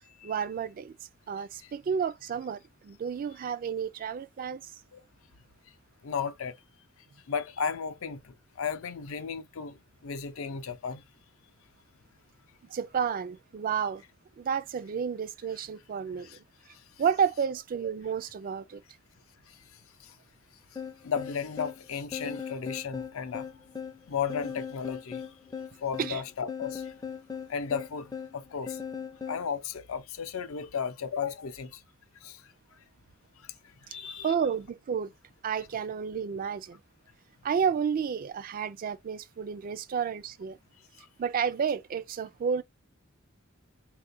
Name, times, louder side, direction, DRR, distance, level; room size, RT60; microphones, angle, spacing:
voice 1, 0.2-0.9 1.3-4.7 12.7-14.0 14.4-16.4 17.0-18.8 26.0-26.2 34.2-35.1 35.4-36.8 37.4-40.6 41.2-42.6, right 7 dB, 45° right, 0.3 m, -31 dB
voice 2, 1.4-1.7 4.9-5.0 6.0-6.6 7.3-11.0 16.2-16.4 16.7-16.9 19.5-20.2 20.7-23.5 24.1-26.9 27.5-28.8 29.3-31.8 32.2-32.9 33.4-34.3 40.8-41.1, left 6 dB, 75° left, 0.5 m, -35 dB
sound 1, 20.8-29.5, left 6 dB, 20° left, 0.4 m, -39 dB
3.6 x 2.4 x 2.5 m
head